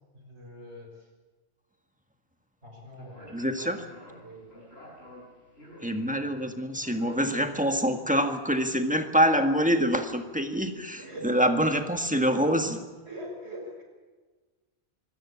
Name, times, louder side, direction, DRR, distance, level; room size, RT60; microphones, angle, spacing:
voice 1, 0.1-1.1 2.6-3.4 4.2-4.4 7.8-7.9 11.0-11.3 13.1-13.8, equal, 80° right, 2 dB, 6.1 m, -43 dB
Speech, 3.0-8.0, equal, 70° left, 7.3 m, -49 dB
voice 2, 3.3-3.8 5.8-12.8, equal, 5° right, 5 dB, 1.8 m, -25 dB
25.0 x 17.0 x 8.5 m, 1.4 s
omnidirectional pair, 1.1 m